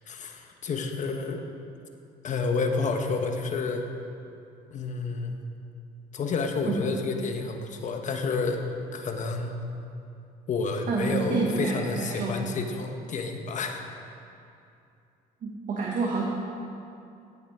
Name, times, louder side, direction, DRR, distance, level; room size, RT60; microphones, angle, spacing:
voice 1, 0.1-1.4 2.2-3.8 4.7-5.4 6.1-8.6 8.9-9.5 10.5-13.8, left 4 dB, 45° left, 4 dB, 1.2 m, -30 dB
voice 2, 10.9-12.4 15.4-16.2, right 4 dB, 50° right, -3 dB, 1.6 m, -28 dB
16.5 x 7.2 x 4.9 m, 2.6 s
cardioid pair, 110°, 17 cm